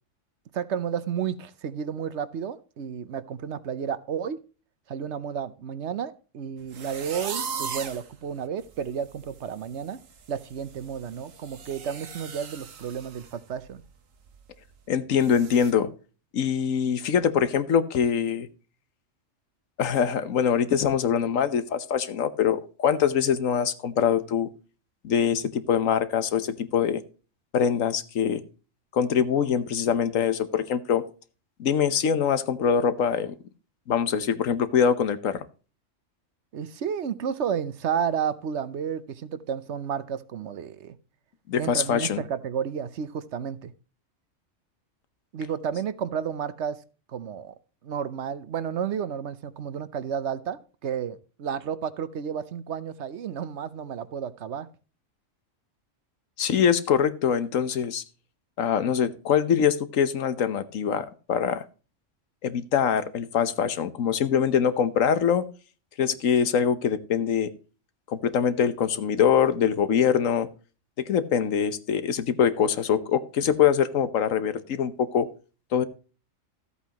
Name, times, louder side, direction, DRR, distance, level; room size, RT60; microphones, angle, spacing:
voice 1, 0.5-4.4 4.9-10.0 10.3-13.8 36.5-40.9 41.6-43.7 45.3-46.8 47.1-47.5 47.8-54.7, right 7 dB, 65° right, 15 dB, 1.0 m, -32 dB
sound 1, 6.7-8.1 8.6-8.7 9.1-9.4 9.6-13.3 13.7-13.8 14.3-14.4 15.2-15.7, right 6 dB, 90° right, 1.6 m, -38 dB
voice 2, 14.9-15.9 16.3-18.5 19.8-24.5 25.0-27.0 27.5-28.4 28.9-31.0 31.6-33.3 33.9-35.4 41.5-42.2 56.4-58.0 58.6-61.6 62.4-65.4 66.0-67.5 68.1-70.5 71.0-75.3 75.7-75.8, left 7 dB, 85° left, 13 dB, 1.3 m, -23 dB
14.0 x 8.3 x 2.9 m, 0.35 s
omnidirectional pair, 1.3 m